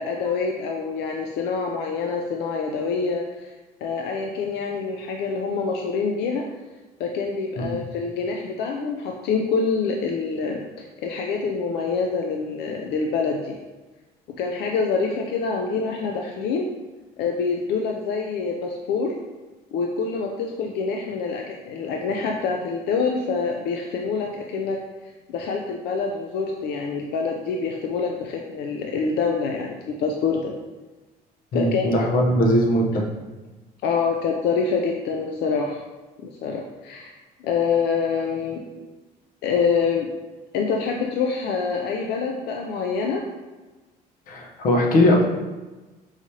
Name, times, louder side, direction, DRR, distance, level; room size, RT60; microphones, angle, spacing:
voice 1, 0.0-3.5 3.8-6.4 7.0-13.6 14.4-16.7 17.2-19.1 19.7-24.8 25.3-30.5 31.5-31.9 33.8-35.8 36.2-37.1 37.4-38.9 39.4-40.1 40.5-43.2, left 5 dB, 80° left, 1 dB, 0.5 m, -26 dB
voice 2, 31.5-33.1 44.3-45.3, left 1 dB, 55° left, 1 dB, 0.8 m, -20 dB
4.8 x 3.2 x 2.8 m, 1.2 s
cardioid pair, 110°, 17 cm